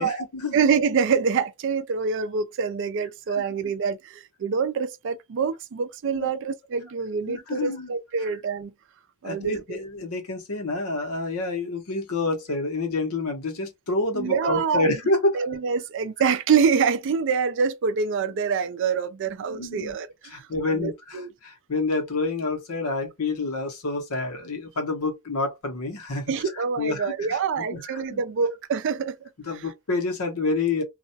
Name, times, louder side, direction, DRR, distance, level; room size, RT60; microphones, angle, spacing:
voice 1, 0.0-0.6 3.4-3.5 6.1-6.3 7.3-7.9 8.2-8.3 9.2-15.4 19.5-20.0 20.2-26.3 26.8-28.2 29.4-30.8, left 3 dB, 75° left, 0.9 m, -28 dB
voice 2, 0.5-8.7 9.2-9.8 14.1-14.9 15.3-21.3 26.3-29.2, right 6 dB, 55° right, 0.4 m, -26 dB
2.3 x 2.1 x 2.6 m
head